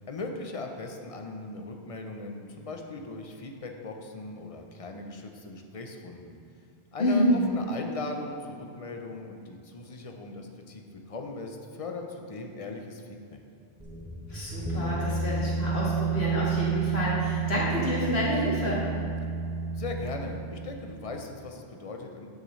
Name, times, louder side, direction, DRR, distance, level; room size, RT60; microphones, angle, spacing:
voice 1, 0.1-6.4 6.9-13.4 19.7-22.3, left 3 dB, 40° left, 3 dB, 0.6 m, -39 dB
voice 2, 7.0-7.4 14.3-18.9, left 1 dB, 70° left, -6 dB, 2.0 m, -28 dB
sound 1, 13.8-21.2, right 5 dB, 5° right, 0.4 m, -31 dB
9.1 x 6.6 x 3.2 m, 2.5 s
omnidirectional pair, 1.1 m